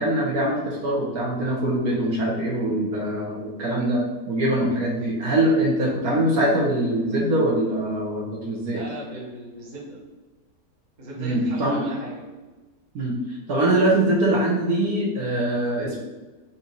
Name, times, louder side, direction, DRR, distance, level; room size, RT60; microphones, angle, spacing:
voice 1, 0.0-4.0 4.3-8.8 11.2-11.8 12.9-13.1 13.5-16.0, right 1 dB, 65° right, -4 dB, 1.2 m, -23 dB
voice 2, 8.7-10.0 11.0-12.2, right 1 dB, 30° right, -4 dB, 0.9 m, -37 dB
4.0 x 2.8 x 3.7 m, 1.2 s
omnidirectional pair, 1.9 m